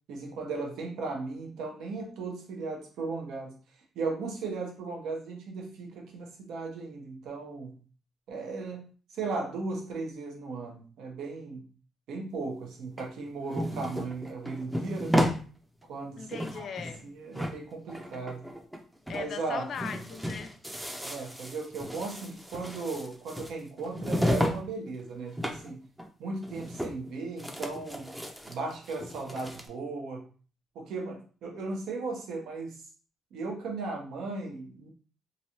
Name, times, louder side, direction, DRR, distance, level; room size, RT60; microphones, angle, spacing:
voice 1, 0.1-3.5 3.9-7.8 8.3-11.6 12.1-15.3 15.9-16.7 17.0-18.5 19.1-19.9 21.0-25.8 26.2-28.1 28.5-30.3 30.7-32.8 33.3-34.9, right 3 dB, 80° right, 0.9 m, -36 dB
sound 1, 13.0-15.4 15.8-15.9 16.2-17.1 17.3-18.8 19.1-19.2 19.5-24.6 24.9-25.7 26.0-26.1 26.4-27.1 27.4-29.7, equal, 5° right, 0.5 m, -33 dB
voice 2, 16.1-17.1 19.1-20.6, left 6 dB, 60° left, 0.4 m, -39 dB
3.0 x 2.6 x 2.9 m
cardioid pair, 90°, 0 cm